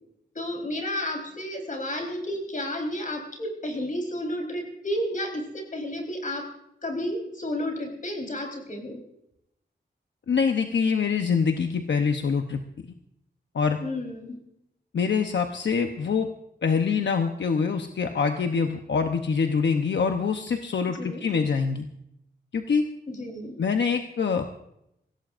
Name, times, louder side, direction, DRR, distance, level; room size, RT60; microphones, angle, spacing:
voice 1, 0.3-6.5 6.8-9.0 13.8-14.4 20.9-21.3 23.1-23.6, left 1 dB, 45° left, 1 dB, 4.3 m, -32 dB
voice 2, 10.3-12.9 13.5-13.8 14.9-16.3 16.6-21.9 22.5-22.9 23.6-24.4, left 5 dB, 80° left, 5 dB, 0.9 m, -25 dB
23.5 x 17.0 x 2.6 m, 0.80 s
wide cardioid pair, 135°, 18 cm